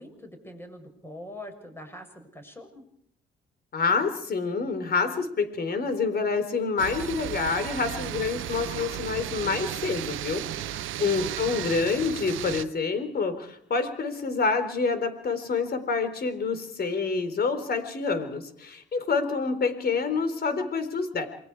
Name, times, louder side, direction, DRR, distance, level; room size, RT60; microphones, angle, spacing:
voice 1, 0.0-2.9 10.4-11.3, left 1 dB, 10° left, 5 dB, 7.0 m, -44 dB
voice 2, 3.7-21.3, left 4 dB, 50° left, 10 dB, 4.0 m, -27 dB
sound 1, 6.8-12.6, right 13 dB, 80° right, 0.8 m, -34 dB
28.0 x 21.5 x 4.8 m, 0.69 s
cardioid pair, 90°, 20 cm